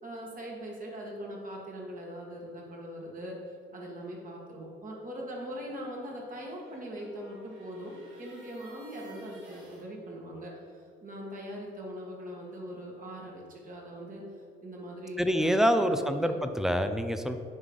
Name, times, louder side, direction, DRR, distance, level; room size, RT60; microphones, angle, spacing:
voice 1, 0.0-3.4 3.7-14.2 14.6-15.5 15.8-16.4, equal, 45° right, -3 dB, 1.9 m, -41 dB
sound 1, 6.3-9.9, right 1 dB, 70° right, 1.8 m, -52 dB
voice 2, 15.2-17.4, equal, ahead, 7 dB, 0.5 m, -26 dB
9.6 x 3.3 x 5.4 m, 2.3 s
cardioid pair, 90°, 20 cm